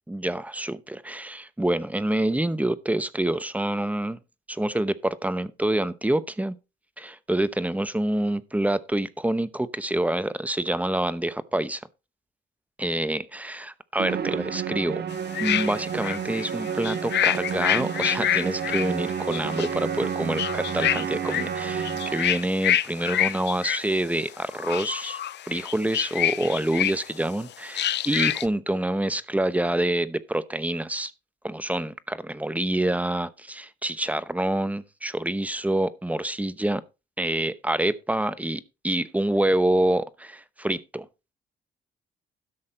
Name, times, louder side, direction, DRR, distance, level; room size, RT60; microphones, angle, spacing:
voice 1, 0.1-4.2 4.5-6.6 7.0-11.8 12.8-15.0 15.4-25.2 25.5-31.1 31.4-36.8 37.2-41.1, right 1 dB, 5° right, 0.9 m, -27 dB
Musical instrument, 14.0-22.5, right 7 dB, 55° right, 1.2 m, -31 dB
sound 1, 15.1-21.5 21.8-23.9 24.4-27.2 27.7-28.5, left 11 dB, 60° left, 0.6 m, -27 dB
13.0 x 6.4 x 4.2 m
cardioid pair, 90°, 20 cm